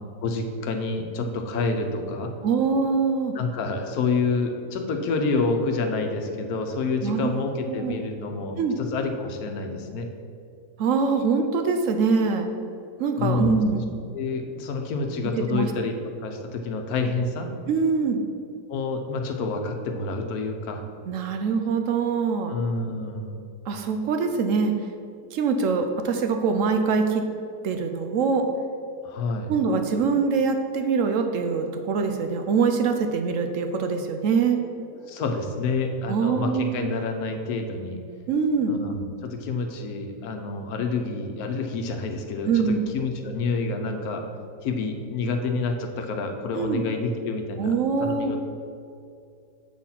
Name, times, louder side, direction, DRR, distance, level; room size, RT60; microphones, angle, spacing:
voice 1, 0.2-2.3 3.3-10.1 13.2-13.6 14.1-15.9 16.2-17.5 18.7-20.8 22.5-23.4 29.0-29.5 34.9-38.0 38.7-44.2 44.6-47.7 48.0-48.5, left 3 dB, 70° left, 4 dB, 1.2 m, -28 dB
voice 2, 2.4-3.3 7.0-7.3 7.7-7.9 8.6-8.8 10.8-12.5 13.0-13.9 15.4-15.7 17.7-18.2 21.1-22.6 23.7-24.7 25.3-27.3 27.6-28.5 29.5-34.6 36.1-36.9 38.3-38.8 42.5-42.9 46.5-46.8 47.6-48.3, right 5 dB, 65° right, 5 dB, 0.8 m, -24 dB
7.1 x 4.3 x 5.6 m, 2.5 s
omnidirectional pair, 1.7 m